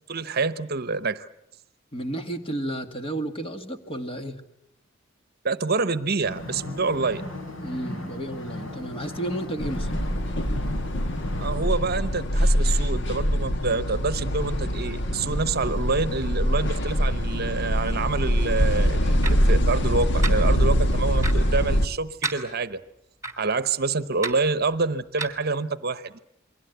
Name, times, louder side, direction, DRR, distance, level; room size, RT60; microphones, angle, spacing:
voice 1, 0.1-1.3 5.4-7.2 11.4-22.8 23.4-26.2, right 4 dB, 50° right, 14 dB, 0.9 m, -27 dB
voice 2, 1.9-4.4 7.6-9.9, right 1 dB, 30° left, 6 dB, 2.1 m, -32 dB
sound 1, 6.2-11.7, left 1 dB, 75° left, 4.9 m, -37 dB
sound 2, 9.6-21.9, equal, 60° left, 1.5 m, -23 dB
sound 3, 19.2-19.3 20.2-20.3 21.2-21.4 22.2-22.4 23.2-23.3 24.2-24.3 25.2-25.4, right 3 dB, 15° right, 3.1 m, -29 dB
28.5 x 22.5 x 8.1 m, 0.79 s
head